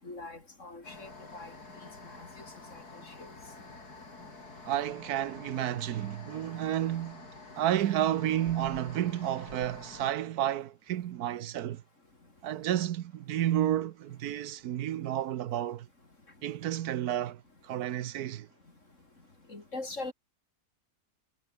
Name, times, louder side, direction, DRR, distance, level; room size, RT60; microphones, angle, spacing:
voice 1, 0.0-1.5 2.0-2.3 2.7-2.8 3.1-3.3 19.5-20.1, left 2 dB, 50° left, 4.5 m, -42 dB
sound 1, 0.8-10.1, left 3 dB, 85° left, 4.9 m, -48 dB
voice 2, 4.6-7.3 7.6-11.8 12.4-15.9 16.4-18.5, right 12 dB, 80° right, 1.3 m, -31 dB
omnidirectional pair, 1.6 m